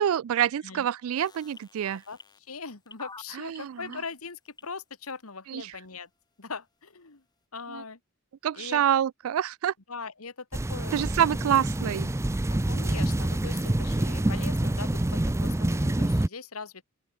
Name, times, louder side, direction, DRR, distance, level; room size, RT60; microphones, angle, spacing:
voice 1, 0.0-2.0 3.4-3.8 5.5-5.6 7.7-7.8 8.4-9.7 10.9-12.1, right 9 dB, 75° right, 0.3 m, -26 dB
sound 1, 1.2-5.1 5.7-5.8, left 4 dB, 20° left, 2.2 m, -48 dB
voice 2, 1.8-6.1 6.4-7.2 7.5-8.0 8.5-8.9 9.9-11.1 12.5-16.8, left 4 dB, 85° left, 1.9 m, -41 dB
sound 2, 10.5-16.3, right 1 dB, 15° right, 0.5 m, -27 dB
open air
head